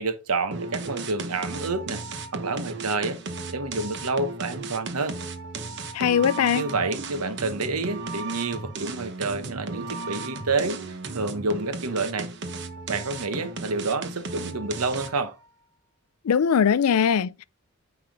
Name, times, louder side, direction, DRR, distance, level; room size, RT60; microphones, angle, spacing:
voice 1, 0.0-2.0 2.3-3.2 3.5-5.2 6.5-10.8 11.1-12.3 12.9-15.4, right 3 dB, 85° right, 1.0 m, -28 dB
sound 1, 0.5-15.3, right 3 dB, 50° right, 1.0 m, -35 dB
voice 2, 5.9-6.6 16.2-17.4, left 7 dB, 85° left, 0.4 m, -21 dB
9.2 x 3.5 x 5.1 m
head